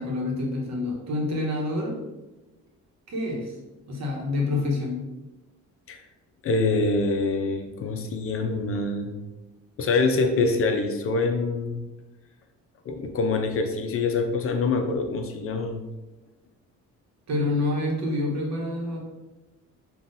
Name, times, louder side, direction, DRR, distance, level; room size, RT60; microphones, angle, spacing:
voice 1, 0.0-2.0 3.1-3.5 3.9-5.0 17.3-19.0, left 2 dB, 60° right, -1 dB, 0.9 m, -27 dB
voice 2, 6.4-9.1 9.8-11.8 12.9-15.8, left 3 dB, 50° left, 5 dB, 0.4 m, -25 dB
3.7 x 2.3 x 2.5 m, 1.1 s
cardioid pair, 90°, 30 cm